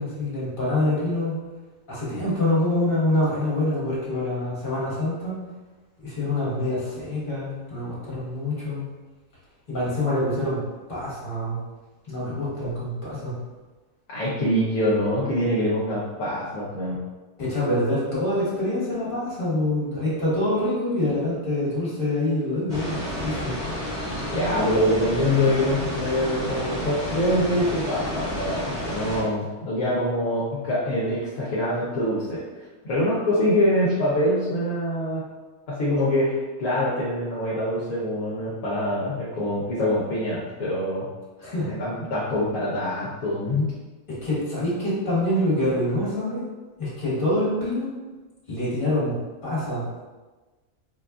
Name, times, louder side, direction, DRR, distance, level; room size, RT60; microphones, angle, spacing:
voice 1, 0.0-1.3 1.9-5.4 6.0-8.9 9.7-10.6 10.9-11.6 12.1-13.3 17.4-23.6 41.4-41.7 44.1-46.4 46.8-47.9 48.5-50.0, left 1 dB, 35° left, -8 dB, 1.4 m, -25 dB
voice 2, 14.1-17.0 24.3-32.4 32.8-35.2 35.7-41.1 41.7-43.7, left 1 dB, 70° left, -8 dB, 1.1 m, -24 dB
sound 1, 22.7-29.2, equal, 5° right, 1.0 m, -30 dB
4.1 x 2.4 x 2.3 m, 1.2 s
omnidirectional pair, 1.6 m